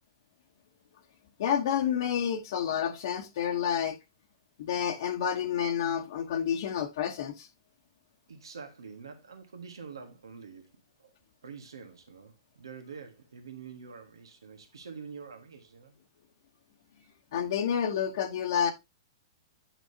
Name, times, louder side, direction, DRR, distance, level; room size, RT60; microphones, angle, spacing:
voice 1, 1.4-4.0 4.6-7.5 17.3-18.7, left 8 dB, 65° left, 1.0 m, -29 dB
voice 2, 8.3-11.1 11.4-15.9, right 5 dB, 90° right, 1.6 m, -46 dB
9.1 x 6.0 x 2.7 m
hypercardioid pair, 125°, 2 cm